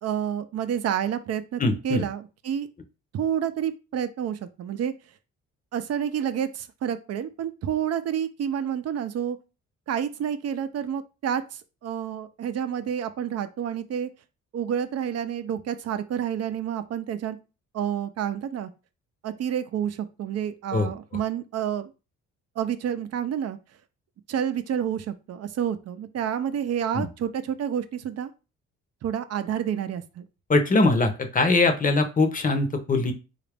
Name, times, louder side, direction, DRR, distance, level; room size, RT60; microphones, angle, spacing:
voice 1, 0.0-2.7 3.1-4.9 5.7-9.4 9.9-14.1 14.5-17.4 17.7-18.7 19.2-21.9 22.6-23.6 24.3-28.3 29.0-30.2, right 9 dB, 55° right, 11 dB, 0.5 m, -29 dB
voice 2, 1.6-2.0 20.7-20.9 26.9-27.1 30.5-33.1, left 3 dB, 25° left, 6 dB, 0.7 m, -22 dB
3.9 x 2.4 x 3.4 m, 0.30 s
cardioid pair, 90°, 30 cm